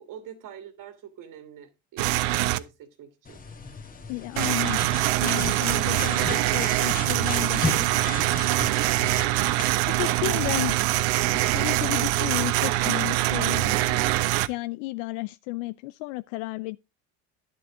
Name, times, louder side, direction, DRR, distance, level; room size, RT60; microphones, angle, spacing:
voice 1, 0.0-3.4, right 9 dB, 55° right, 1.9 m, -45 dB
sound 1, 2.0-2.6 4.4-14.5, right 17 dB, 75° right, 0.8 m, -24 dB
sound 2, 3.3-9.7, left 4 dB, 20° left, 1.9 m, -35 dB
voice 2, 4.1-4.8 5.2-8.1 10.0-10.9 11.3-14.1 14.5-16.8, left 23 dB, 75° left, 0.5 m, -33 dB
10.5 x 7.8 x 3.6 m
supercardioid pair, 90°, 39 cm